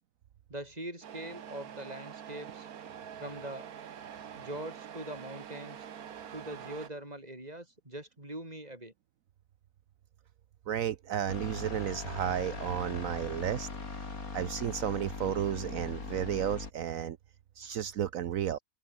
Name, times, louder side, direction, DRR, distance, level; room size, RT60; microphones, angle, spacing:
voice 1, 0.5-2.7 3.2-3.7 4.3-5.8 6.3-8.9, right 1 dB, 25° right, 7.5 m, -42 dB
Truck, 1.0-6.9, right 8 dB, 85° right, 1.7 m, -45 dB
voice 2, 10.7-13.7 14.3-17.2 17.6-18.6, right 10 dB, 70° right, 1.2 m, -33 dB
sound 1, 11.3-16.7, left 4 dB, 75° left, 3.6 m, -40 dB
open air
omnidirectional pair, 1.5 m